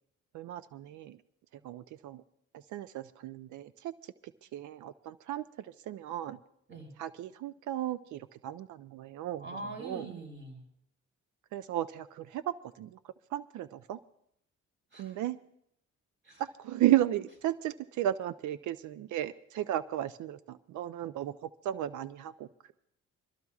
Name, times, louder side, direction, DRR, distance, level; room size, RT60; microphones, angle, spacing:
voice 1, 0.3-1.2 1.6-2.2 2.7-4.1 4.5-6.4 7.0-9.4 9.8-10.1 11.5-13.0 13.3-14.0 15.0-15.4 16.4-22.7, right 13 dB, 75° right, 13 dB, 0.5 m, -34 dB
voice 2, 9.4-10.6 14.9-15.3 16.2-16.4, right 2 dB, 40° right, 2 dB, 4.5 m, -43 dB
26.5 x 13.5 x 2.4 m, 0.73 s
cardioid pair, 90°, 30 cm